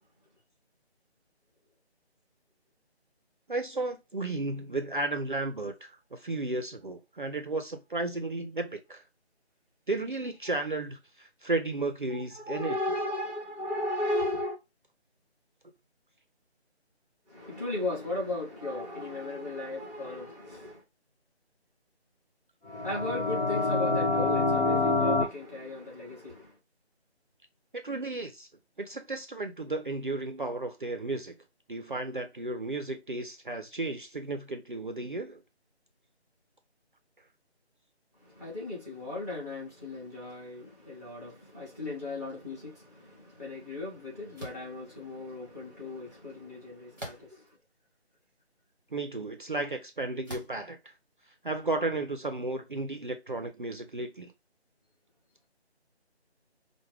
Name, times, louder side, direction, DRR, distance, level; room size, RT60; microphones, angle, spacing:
voice 1, 3.5-9.0 9.9-12.8 27.8-28.5 28.8-31.4 31.7-35.4 48.9-50.9 51.4-54.3, right 2 dB, 50° right, 0.5 m, -33 dB
voice 2, 12.1-14.6 17.3-20.8 22.6-26.5 38.2-47.5, left 2 dB, 15° left, 1.0 m, -36 dB
sound 1, 22.7-25.2, left 3 dB, 65° left, 1.0 m, -26 dB
sound 2, 44.4-44.7 47.0-47.5 48.2-48.3 50.2-50.7, equal, 20° right, 0.8 m, -42 dB
4.7 x 2.2 x 3.0 m
figure-of-eight pair, 170°, 33 cm